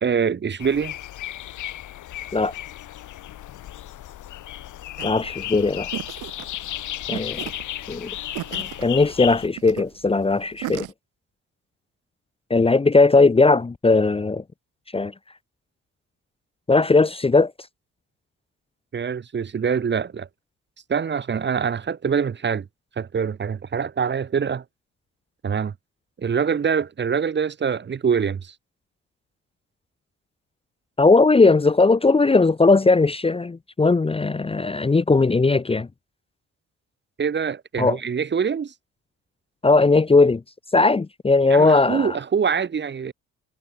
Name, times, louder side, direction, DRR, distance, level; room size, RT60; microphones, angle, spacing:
voice 1, 0.0-0.9 18.9-20.3 20.9-22.7 23.0-24.6 25.4-25.7 26.2-28.5 37.2-38.7 41.5-43.1, right 6 dB, 35° right, 1.3 m, -24 dB
sound 1, 0.6-9.5, left 13 dB, 80° left, 7.1 m, -34 dB
voice 2, 5.0-5.9 7.1-7.5 7.9-8.1 8.5-10.9 12.5-14.4 14.9-15.1 16.7-17.5 31.0-35.9 37.8-38.0 39.6-40.4 40.7-42.2, left 3 dB, 20° left, 0.8 m, -18 dB
sound 2, 5.0-10.9, right 17 dB, 90° right, 1.5 m, -36 dB
cardioid pair, 90°, 30 cm